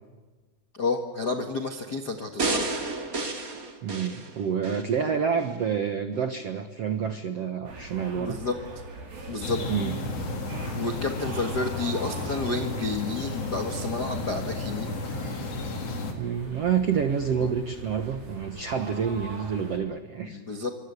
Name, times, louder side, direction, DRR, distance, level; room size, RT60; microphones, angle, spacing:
voice 1, 0.7-2.7 8.2-8.6 9.3-9.6 10.7-14.9 17.3-17.5 20.2-20.7, left 3 dB, 85° left, 6 dB, 0.9 m, -30 dB
sound 1, 2.4-4.9 5.4-5.5, right 3 dB, 25° right, 2.2 m, -31 dB
voice 2, 3.8-8.4 9.7-10.0 16.2-20.4, right 7 dB, 75° right, 8 dB, 1.4 m, -28 dB
sound 2, 7.6-19.8, right 3 dB, 60° right, 6.2 m, -42 dB
sound 3, 9.4-16.1, left 2 dB, 40° left, 3.2 m, -33 dB
26.5 x 25.5 x 8.3 m, 1.3 s
omnidirectional pair, 4.8 m